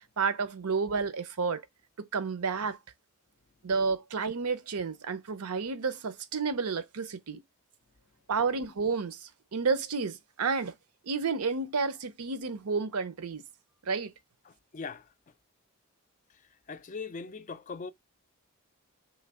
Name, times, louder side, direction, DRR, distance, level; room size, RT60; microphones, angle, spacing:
voice 1, 0.2-1.6 2.1-2.8 3.6-7.4 8.3-10.7 11.1-13.4 13.9-14.1, right 5 dB, 85° right, 0.7 m, -31 dB
voice 2, 14.5-15.1 16.7-17.9, left 4 dB, 35° left, 0.3 m, -40 dB
3.2 x 3.2 x 4.7 m
head